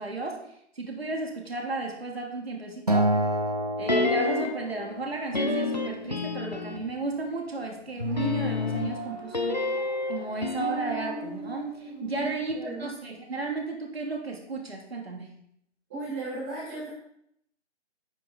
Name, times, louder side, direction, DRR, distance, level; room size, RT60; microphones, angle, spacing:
voice 1, 0.0-3.2 3.8-9.7 10.1-15.3, right 3 dB, 55° right, 1 dB, 1.3 m, -34 dB
Acoustic guitar, 2.9-5.3, right 1 dB, 35° right, 0.6 m, -28 dB
sound 1, 3.9-4.7 5.3-7.0 8.0-12.2 12.5-12.6, left 3 dB, 40° left, 0.5 m, -30 dB
sound 2, 7.9-12.3, left 1 dB, 75° right, 2.1 m, -42 dB
voice 2, 12.2-12.9 15.9-16.9, right 2 dB, 10° right, -6 dB, 1.5 m, -36 dB
9.4 x 3.9 x 4.0 m, 0.73 s
figure-of-eight pair, 150°, 36 cm